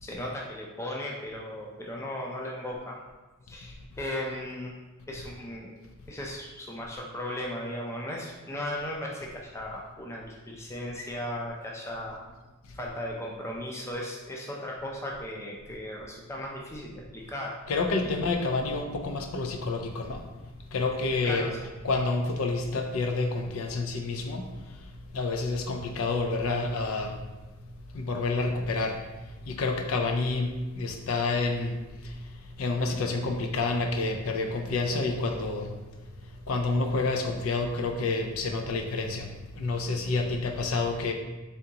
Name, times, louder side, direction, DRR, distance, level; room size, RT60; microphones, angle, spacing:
voice 1, 0.0-3.0 3.5-4.7 5.1-5.7 6.1-12.2 12.7-17.6 18.0-18.1 21.2-21.7, left 1 dB, 15° left, -2 dB, 0.4 m, -36 dB
voice 2, 17.7-20.2 20.7-21.5 21.8-24.5 25.1-27.2 27.9-29.0 29.5-31.8 32.0-32.1 32.6-35.7 36.5-41.1, left 3 dB, 85° left, 4 dB, 0.5 m, -28 dB
3.8 x 3.5 x 2.8 m, 1.1 s
head